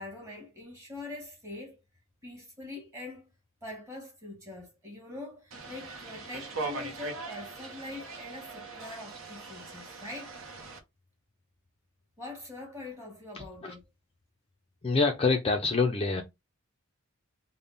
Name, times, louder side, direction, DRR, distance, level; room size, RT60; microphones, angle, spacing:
voice 1, 0.0-1.8 2.2-3.3 3.6-10.4 12.2-13.8, left 2 dB, 15° right, 1.5 m, -43 dB
sound 1, 5.5-10.8, right 3 dB, 60° right, 0.8 m, -41 dB
voice 2, 14.8-16.2, left 4 dB, 25° left, 0.4 m, -26 dB
3.5 x 2.1 x 3.9 m
head